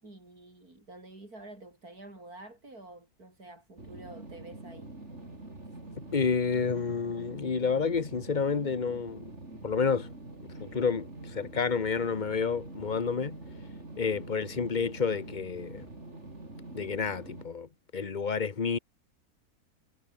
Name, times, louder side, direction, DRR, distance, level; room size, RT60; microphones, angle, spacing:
voice 1, 0.0-4.9, right 2 dB, 80° right, 7.5 m, -49 dB
sound 1, 3.8-17.5, right 2 dB, 50° right, 5.5 m, -45 dB
voice 2, 6.1-9.3 9.6-10.1 10.6-13.4 14.0-15.9 16.7-18.8, left 5 dB, 30° left, 1.4 m, -30 dB
omnidirectional pair, 1.6 m